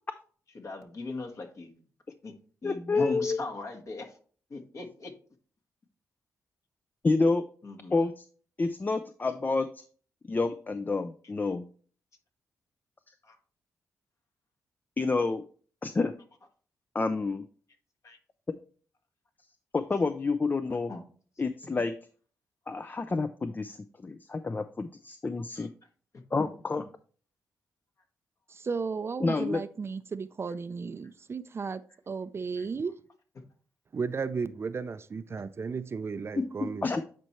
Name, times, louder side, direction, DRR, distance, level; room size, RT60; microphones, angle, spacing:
voice 1, 0.5-1.8 2.2-2.3 2.6-4.2 4.5-5.1 7.6-7.9 13.2-13.4 18.0-18.2 20.9-21.0 25.5-25.7 26.4-26.5 31.6-31.7 32.6-32.7 36.3-36.7, left 3 dB, 50° left, 1.5 m, -37 dB
voice 2, 2.6-3.4 7.0-7.5 7.9-8.2 8.6-9.7 10.3-11.6 15.0-15.4 15.8-16.1 16.9-17.4 19.7-20.9 21.4-21.9 22.7-25.7 26.3-26.8 29.2-29.6 36.8-37.0, left 3 dB, 30° left, 0.5 m, -28 dB
voice 3, 28.5-32.9 33.9-36.9, right 5 dB, 40° right, 0.4 m, -34 dB
9.2 x 4.4 x 3.1 m
cardioid pair, 65°, 6 cm